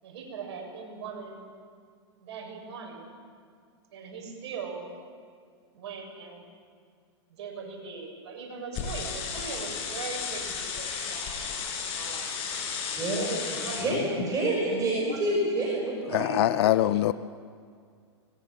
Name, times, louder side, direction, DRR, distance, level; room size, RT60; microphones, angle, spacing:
voice 1, 0.0-1.4 2.2-3.1 3.9-4.8 5.7-6.4 7.4-12.3 13.1-14.1 14.7-15.3, right 5 dB, 65° right, 1 dB, 7.1 m, -40 dB
sound 1, 8.7-13.8, left 6 dB, 40° left, 6.7 m, -34 dB
voice 2, 13.7-16.3 16.6-16.8, right 1 dB, 25° right, -3 dB, 6.0 m, -28 dB
voice 3, 16.1-17.1, left 14 dB, 60° left, 15 dB, 0.7 m, -23 dB
24.5 x 20.5 x 7.4 m, 2.1 s
hypercardioid pair, 120°, 15 cm